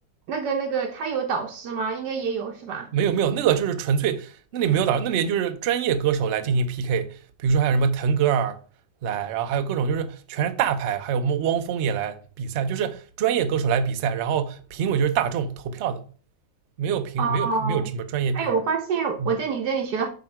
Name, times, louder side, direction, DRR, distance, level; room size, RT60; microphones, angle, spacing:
voice 1, 0.3-2.9 17.2-17.8 18.3-20.1, right 5 dB, 80° right, 1.4 m, -26 dB
voice 2, 2.9-8.6 9.0-16.0 16.8-18.6 19.2-19.3, right 7 dB, 60° right, 0.8 m, -24 dB
5.9 x 5.2 x 4.4 m
omnidirectional pair, 1.8 m